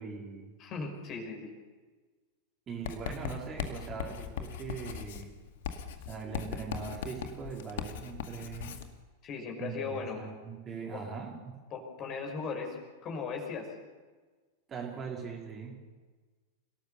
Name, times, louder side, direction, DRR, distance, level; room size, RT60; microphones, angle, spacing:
voice 1, 0.0-0.5 2.7-5.3 6.1-8.7 9.6-11.5 14.7-16.0, right 5 dB, 25° right, -1 dB, 4.2 m, -41 dB
voice 2, 0.6-1.5 9.2-10.2 10.9-11.0 11.7-12.8 13.0-13.7, left 5 dB, 35° left, 3 dB, 5.7 m, -37 dB
Writing, 2.8-8.9, left 8 dB, 55° left, 2.2 m, -39 dB
28.5 x 18.0 x 6.9 m, 1.4 s
figure-of-eight pair, 90°, 0 cm